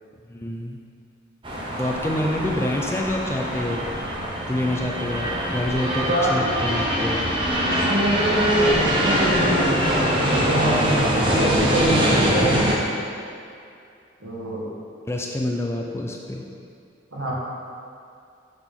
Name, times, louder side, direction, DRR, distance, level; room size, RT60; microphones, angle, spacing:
voice 1, 0.3-0.8 1.8-3.8 4.4-7.2 15.1-16.4, left 1 dB, 15° left, 0 dB, 0.4 m, -27 dB
sound 1, 1.4-12.7, equal, 25° right, 0.8 m, -23 dB
voice 2, 7.7-9.7 10.1-10.9 11.2-12.7 14.2-14.7 17.1-17.3, right 1 dB, 85° right, -6 dB, 1.7 m, -24 dB
6.4 x 6.0 x 3.6 m, 2.4 s
head